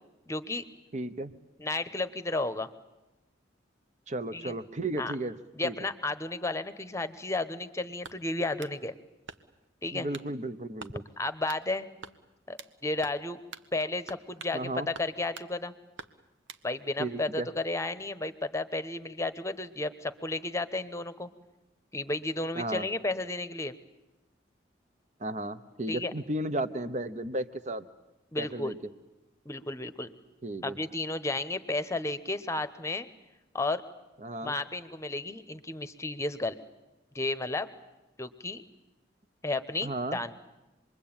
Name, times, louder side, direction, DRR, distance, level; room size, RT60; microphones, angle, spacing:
voice 1, 0.3-0.7 1.6-2.7 4.3-4.6 5.0-5.1 5.5-8.9 9.8-10.1 11.2-11.9 12.5-13.4 13.7-15.7 16.6-21.3 21.9-23.8 25.9-26.1 28.3-28.8 29.4-30.1 30.6-33.1 33.5-33.8 34.4-36.6 37.1-37.7 38.2-38.6 39.4-40.4, left 2 dB, 15° left, 12 dB, 1.1 m, -33 dB
voice 2, 0.9-1.3 4.1-5.3 5.6-5.8 9.9-11.0 14.5-14.9 17.0-17.5 22.5-22.8 25.2-27.8 28.4-28.8 30.4-30.8 34.2-34.5 39.8-40.2, right 1 dB, 40° right, 12 dB, 1.1 m, -34 dB
sound 1, 8.0-8.8 9.3-9.7 10.1-10.3 10.8-11.0 11.5-11.7 12.0-12.8 13.0-13.2 13.5-13.7 14.1-14.6 14.9-15.5 16.0-16.7, right 5 dB, 85° right, 1.2 m, -46 dB
27.0 x 22.0 x 8.9 m, 1.0 s
head